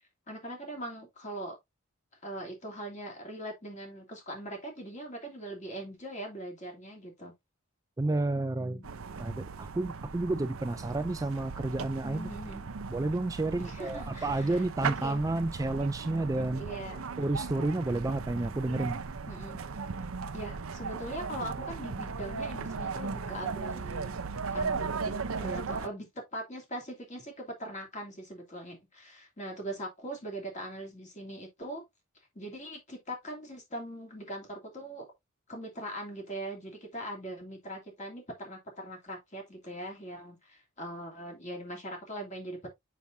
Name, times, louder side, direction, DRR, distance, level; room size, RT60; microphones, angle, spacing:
voice 1, 0.3-1.6 2.2-7.3 8.3-8.9 12.0-12.7 13.6-15.2 16.6-17.1 19.3-19.6 20.3-24.1 24.5-31.8 32.3-35.1 35.5-42.7, right 1 dB, 35° left, 2.8 m, -41 dB
voice 2, 8.0-8.8 9.2-12.3 12.9-16.6 17.2-19.0, right 2 dB, 15° right, 0.3 m, -30 dB
sound 1, 8.8-25.9, right 5 dB, 75° right, 0.6 m, -37 dB
7.0 x 6.0 x 2.7 m
head